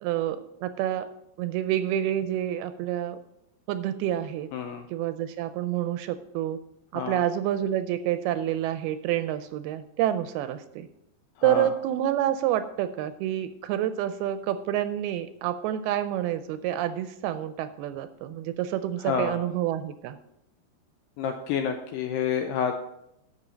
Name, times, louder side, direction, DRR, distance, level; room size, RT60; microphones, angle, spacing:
voice 1, 0.0-1.1 1.4-3.2 3.7-4.5 4.9-6.6 6.9-10.9 11.4-20.2, right 12 dB, 85° right, 11 dB, 2.3 m, -28 dB
voice 2, 4.5-4.9 7.0-7.2 11.4-11.7 19.1-19.4 21.2-22.8, left 7 dB, 85° left, 5 dB, 2.1 m, -29 dB
10.5 x 7.0 x 5.1 m, 0.81 s
omnidirectional pair, 4.7 m